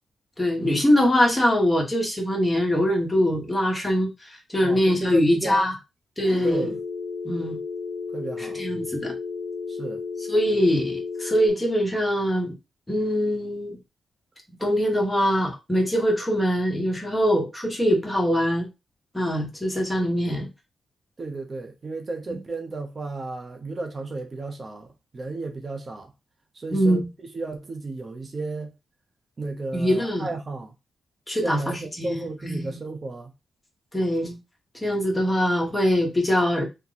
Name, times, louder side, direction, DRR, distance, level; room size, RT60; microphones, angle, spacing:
voice 1, 0.4-5.7 6.2-6.7 7.2-7.6 8.4-9.1 10.3-12.6 12.9-13.8 14.6-18.7 19.1-20.5 22.3-22.4 26.7-27.1 29.7-30.3 31.3-32.8 33.9-34.4 34.8-36.6, equal, 15° left, 1.2 m, -23 dB
voice 2, 4.6-5.7 6.4-6.8 8.1-8.6 9.7-10.0 21.2-26.1 26.5-27.1 27.3-28.7 29.4-30.7 31.4-33.3, right 3 dB, 40° right, 0.6 m, -33 dB
Telephone, 6.5-11.5, left 4 dB, 60° left, 0.7 m, -33 dB
2.9 x 2.2 x 3.8 m
cardioid pair, 75°, 0 cm